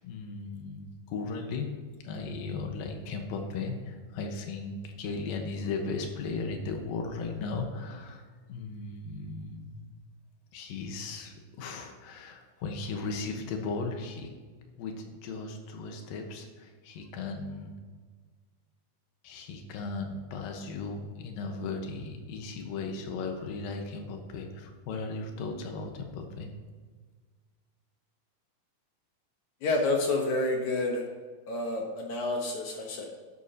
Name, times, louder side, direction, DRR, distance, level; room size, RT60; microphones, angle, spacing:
voice 1, 0.0-1.7 2.0-8.2 8.5-9.8 10.5-14.3 14.8-17.7 19.2-26.5, left 4 dB, 80° left, 3 dB, 2.9 m, -36 dB
voice 2, 29.6-31.0 31.5-33.1, left 2 dB, 65° left, 1 dB, 2.2 m, -29 dB
11.5 x 11.0 x 2.9 m, 1.5 s
omnidirectional pair, 4.1 m